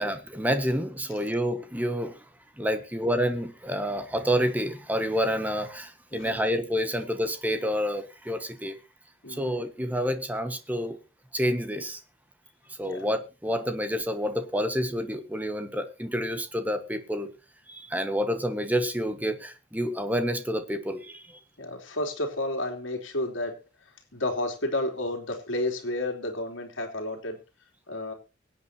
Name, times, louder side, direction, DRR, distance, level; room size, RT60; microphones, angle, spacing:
voice 1, 0.0-2.2 2.6-8.8 9.3-11.0 11.3-12.0 12.8-17.3 17.7-21.4, equal, 10° right, 1.4 m, -28 dB
voice 2, 9.2-9.5 12.9-13.0 21.6-23.6 24.1-27.4 27.9-28.1, left 1 dB, 70° left, 3.2 m, -31 dB
23.5 x 8.5 x 2.9 m
head